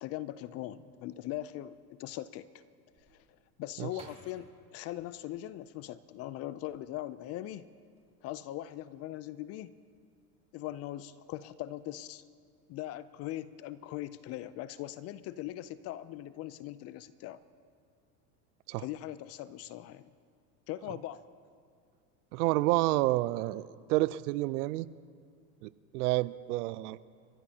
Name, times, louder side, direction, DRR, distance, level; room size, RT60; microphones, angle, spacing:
voice 1, 0.0-2.5 3.1-3.2 3.6-7.7 8.2-9.7 10.5-12.2 12.7-17.4 18.8-20.1 20.7-21.2, left 14 dB, 35° left, 16 dB, 0.4 m, -40 dB
sound 1, 3.0-6.1 6.6-7.3 7.6-8.1, right 2 dB, 15° right, 3.6 m, -58 dB
voice 2, 22.3-24.9 25.6-27.0, right 18 dB, 70° right, 19 dB, 0.6 m, -29 dB
29.5 x 14.5 x 2.8 m, 2.2 s
hypercardioid pair, 105°, 47 cm